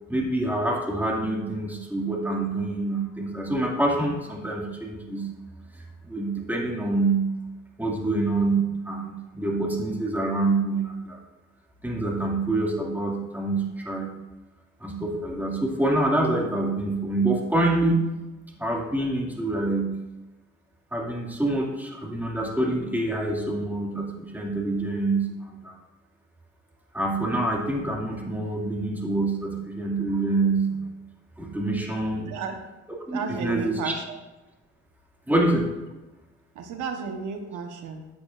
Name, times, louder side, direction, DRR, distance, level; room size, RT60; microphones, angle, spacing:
voice 1, 0.1-5.3 5.7-7.3 7.8-11.2 11.8-14.1 14.8-18.0 18.6-20.0 20.9-25.8 26.9-30.8 31.4-32.3 33.1-33.9 35.3-35.7, right 2 dB, 5° right, -2 dB, 2.3 m, -26 dB
voice 2, 32.1-32.6 33.1-34.2 36.5-38.1, right 5 dB, 85° right, 4 dB, 1.2 m, -33 dB
13.0 x 8.5 x 2.6 m, 1.1 s
cardioid pair, 90°, 30 cm